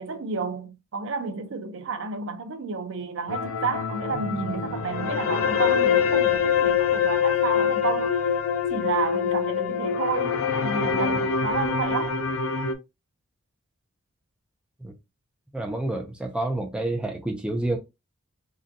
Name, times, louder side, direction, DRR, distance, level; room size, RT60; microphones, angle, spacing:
voice 1, 0.0-8.3 8.7-12.2, right 5 dB, 55° right, 0.5 m, -31 dB
sound 1, 3.3-12.7, left 7 dB, 70° left, 0.5 m, -24 dB
sound 2, 4.1-11.8, right 3 dB, 25° left, 0.9 m, -45 dB
voice 2, 15.5-17.8, right 2 dB, 5° right, 0.4 m, -28 dB
3.8 x 2.2 x 2.6 m
head